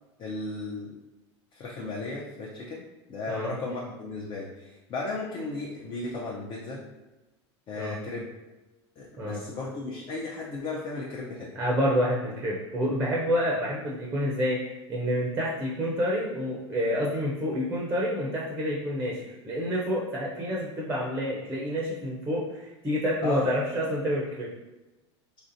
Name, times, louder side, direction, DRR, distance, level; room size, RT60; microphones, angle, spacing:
voice 1, 0.2-1.0 1.5-2.8 3.1-6.8 7.7-8.3 9.0-11.5 23.2-23.5, left 3 dB, 35° left, -4 dB, 0.6 m, -35 dB
voice 2, 11.6-24.5, equal, 15° right, -3 dB, 0.6 m, -28 dB
3.3 x 2.5 x 2.6 m, 1.1 s
hypercardioid pair, 95°, 15 cm